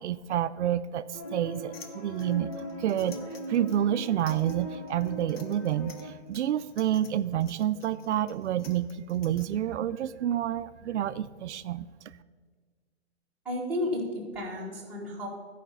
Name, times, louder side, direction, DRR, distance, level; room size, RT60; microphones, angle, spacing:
voice 1, 0.0-2.5 2.8-11.9, right 11 dB, 85° right, 13 dB, 0.5 m, -29 dB
sound 1, 1.1-6.1, equal, 20° left, 0.4 m, -40 dB
sound 2, 1.7-9.5, left 5 dB, 60° left, 1.1 m, -52 dB
voice 2, 13.4-15.3, left 1 dB, 5° right, -7 dB, 1.3 m, -32 dB
12.5 x 5.0 x 5.5 m, 1.5 s
hypercardioid pair, 170°, 34 cm